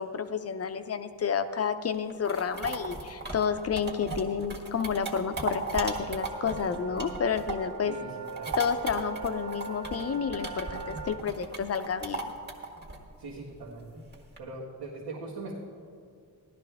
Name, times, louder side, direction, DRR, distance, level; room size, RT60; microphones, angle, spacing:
voice 1, 0.0-8.0 8.6-12.3, left 6 dB, 40° left, 9 dB, 0.6 m, -30 dB
sound 1, 1.9-7.8 8.1-14.4, right 3 dB, 25° right, 1.6 m, -37 dB
sound 2, 5.6-11.2, right 6 dB, 50° right, 0.6 m, -41 dB
voice 2, 7.8-8.6 13.2-14.0 14.4-15.5, right 3 dB, 85° right, -5 dB, 1.9 m, -41 dB
16.0 x 12.0 x 3.5 m, 2.3 s
wide cardioid pair, 140°, 38 cm